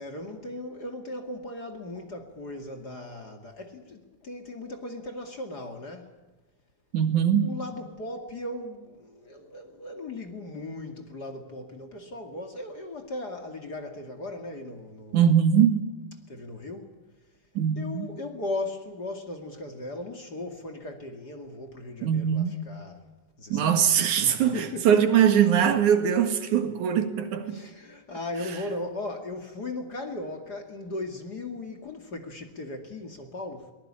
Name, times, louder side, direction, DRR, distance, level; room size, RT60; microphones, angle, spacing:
voice 1, 0.0-6.1 7.4-15.3 16.3-16.9 17.8-23.0 23.4-23.9 24.5-25.0 27.5-33.7, left 2 dB, 35° left, 2.5 m, -37 dB
voice 2, 6.9-7.5 15.1-15.8 17.6-18.1 22.0-22.5 23.5-27.6, right 8 dB, 75° right, 3.2 m, -22 dB
22.5 x 20.0 x 8.8 m
omnidirectional pair, 3.5 m